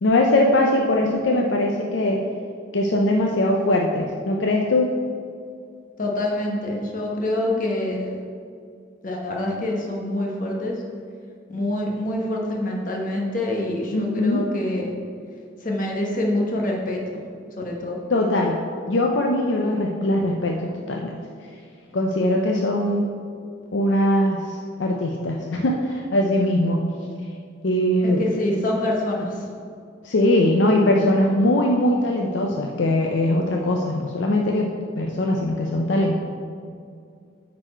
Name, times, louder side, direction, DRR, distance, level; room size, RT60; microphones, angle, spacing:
voice 1, 0.0-2.2 2.7-4.9 13.9-14.5 18.1-18.6 18.9-21.2 21.9-23.1 23.7-26.8 27.6-28.3 30.0-34.7 35.0-36.2, left 1 dB, 70° left, 0 dB, 0.6 m, -21 dB
voice 2, 6.0-8.1 9.0-10.8 11.5-14.9 15.6-17.0 17.6-18.0 28.0-29.5, left 1 dB, 45° left, -1 dB, 1.2 m, -26 dB
9.0 x 4.2 x 4.4 m, 2.3 s
head